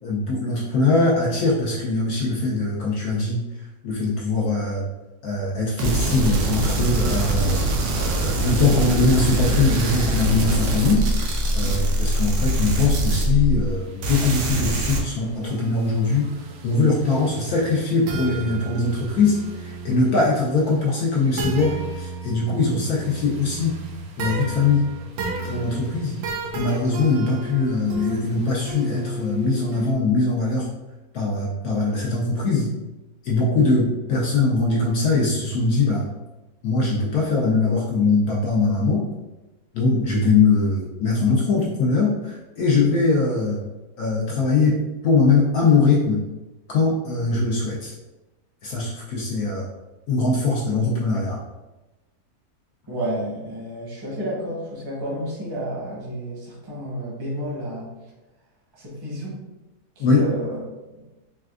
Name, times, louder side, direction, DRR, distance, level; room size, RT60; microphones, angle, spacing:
voice 1, 0.0-3.4 3.8-4.8 5.2-7.6 8.0-16.3 16.6-23.8 24.2-24.9 25.5-26.2 26.5-30.7 31.1-32.7 33.2-36.0 36.6-39.1 39.7-43.6 44.0-46.2 46.7-47.9 48.6-49.7 50.1-51.4 60.0-60.3, left 3 dB, 70° left, -4 dB, 1.0 m, -21 dB
sound 1, 5.8-13.7 14.0-15.0, right 1 dB, 90° right, 1.3 m, -23 dB
sound 2, 13.7-29.9, right 3 dB, 70° right, 0.9 m, -34 dB
voice 2, 52.9-57.9 58.7-59.4 60.0-60.6 60.9-61.0, right 1 dB, 20° right, -5 dB, 0.7 m, -31 dB
4.2 x 2.3 x 2.3 m, 1.1 s
omnidirectional pair, 1.8 m